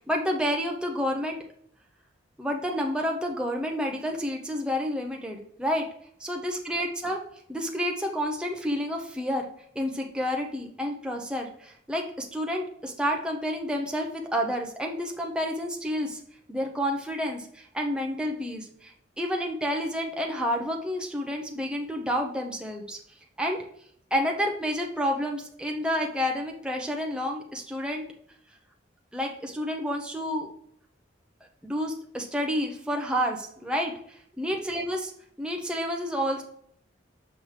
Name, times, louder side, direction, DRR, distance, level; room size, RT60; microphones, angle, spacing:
voice 1, 0.1-1.4 2.4-5.9 6.2-7.2 7.5-9.5 9.7-16.2 16.5-23.0 23.4-23.6 24.1-28.0 29.1-30.5 31.6-35.0 35.4-36.4, equal, 5° right, 1 dB, 0.7 m, -29 dB
6.1 x 5.8 x 3.3 m, 0.66 s
head